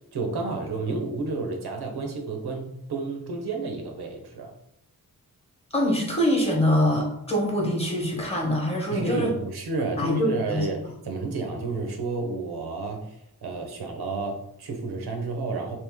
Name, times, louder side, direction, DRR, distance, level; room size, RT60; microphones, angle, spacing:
voice 1, 0.1-4.5 8.9-13.2 13.4-15.8, right 3 dB, 85° right, 3 dB, 0.8 m, -31 dB
voice 2, 5.7-9.3 10.0-10.7, equal, 15° left, -1 dB, 0.9 m, -24 dB
3.0 x 2.8 x 3.5 m, 0.77 s
wide cardioid pair, 115°, 37 cm